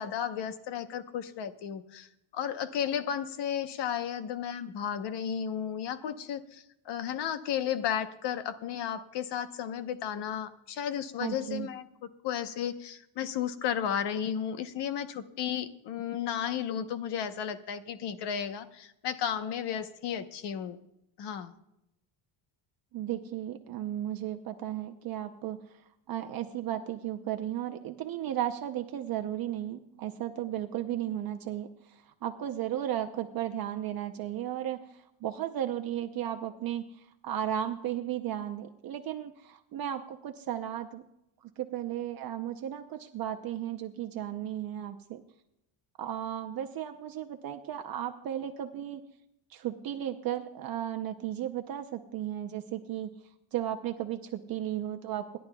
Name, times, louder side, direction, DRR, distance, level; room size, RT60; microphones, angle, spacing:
voice 1, 0.0-2.1 2.3-11.8 12.2-20.8 21.2-21.5, left 9 dB, 60° left, 10 dB, 1.0 m, -33 dB
voice 2, 11.2-11.7 22.9-25.8 26.1-41.0 41.4-45.2 46.0-49.0 49.5-53.1 53.5-55.4, right 11 dB, 50° right, 5 dB, 0.7 m, -35 dB
27.5 x 11.0 x 2.3 m, 0.83 s
cardioid pair, 160°, 48 cm